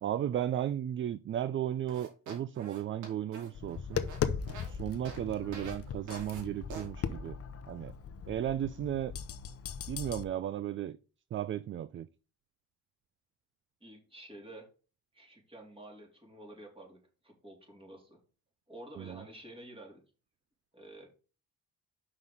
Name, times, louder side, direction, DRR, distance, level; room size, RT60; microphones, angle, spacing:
voice 1, 0.0-4.0 4.7-7.4 7.7-7.9 8.3-9.1 9.9-11.0 11.3-12.1 19.0-19.2, right 11 dB, 40° right, 0.4 m, -35 dB
sound 1, 1.9-4.7 5.0-5.2 5.5-5.8 6.1-6.4 6.7-6.9, right 4 dB, 75° right, 2.3 m, -46 dB
Tap, 3.5-10.2, left 7 dB, 50° left, 0.7 m, -38 dB
voice 2, 13.8-14.7 15.1-17.0 17.2-18.2 18.7-20.0 20.7-21.1, right 1 dB, 20° right, 3.5 m, -50 dB
5.6 x 4.9 x 5.4 m
cardioid pair, 90°, 30 cm